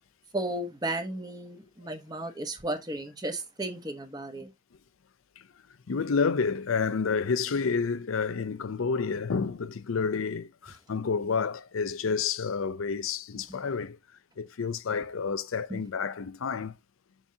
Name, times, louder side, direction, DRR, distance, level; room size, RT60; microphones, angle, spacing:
voice 1, 0.3-4.5 15.7-15.8, right 1 dB, 20° right, 1.0 m, -34 dB
voice 2, 5.9-14.0 14.4-16.8, left 5 dB, 85° left, 0.5 m, -29 dB
7.0 x 6.7 x 2.7 m
head